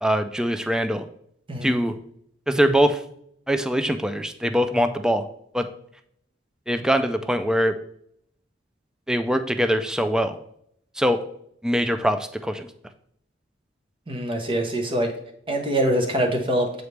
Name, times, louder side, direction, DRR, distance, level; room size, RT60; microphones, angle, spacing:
voice 1, 0.0-1.1 1.6-2.0 2.5-3.0 3.5-5.3 5.5-5.7 6.7-7.8 9.1-10.4 11.0-11.2 11.6-12.7, equal, 5° right, 8 dB, 0.3 m, -22 dB
voice 2, 1.5-1.8 14.1-15.1 15.5-16.7, right 1 dB, 30° right, 3 dB, 0.9 m, -24 dB
8.1 x 4.0 x 3.3 m, 0.71 s
head